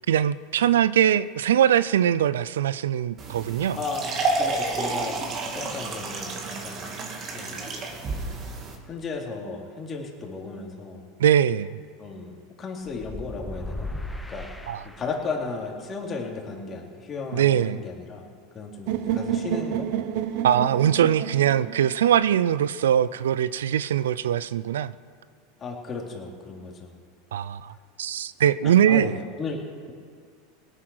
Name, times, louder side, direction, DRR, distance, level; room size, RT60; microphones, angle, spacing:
voice 1, 0.1-3.8 11.2-11.8 14.7-14.8 17.3-17.8 20.4-24.9 27.3-27.7 28.0-29.2, right 10 dB, 90° right, 17 dB, 0.4 m, -22 dB
sound 1, 3.2-8.8, right 3 dB, 35° right, 2.4 m, -30 dB
voice 2, 3.7-4.1 4.4-5.2 5.5-6.9 7.3-7.7 8.1-8.4 8.9-11.0 12.0-13.9 14.3-14.5 15.0-18.2 18.5-19.9 25.6-26.9 28.6-29.6, left 4 dB, 30° left, 0 dB, 3.2 m, -35 dB
sound 2, 12.9-15.5, left 1 dB, 5° left, 1.2 m, -36 dB
sound 3, 18.9-22.8, right 10 dB, 65° right, 0.9 m, -30 dB
18.5 x 9.9 x 6.3 m, 2.1 s
supercardioid pair, 115°, 0 cm